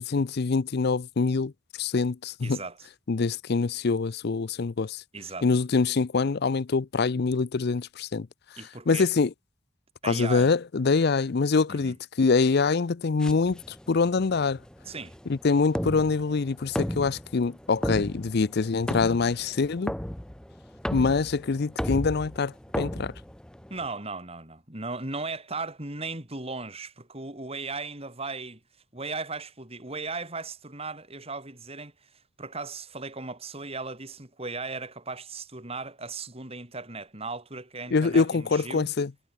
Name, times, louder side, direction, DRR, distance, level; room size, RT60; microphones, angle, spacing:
voice 1, 0.0-1.5 1.8-2.6 3.1-5.0 5.4-8.3 8.9-9.3 10.0-13.6 13.9-14.6 15.3-19.9 20.9-23.1 37.9-39.1, left 4 dB, 50° left, 0.5 m, -25 dB
voice 2, 2.4-2.9 5.1-5.5 8.6-9.1 10.0-10.5 11.7-11.9 14.9-15.2 23.7-28.6 28.9-32.1 32.4-38.9, right 3 dB, 30° right, 4.4 m, -37 dB
sound 1, 13.2-23.9, equal, 5° left, 0.6 m, -35 dB
head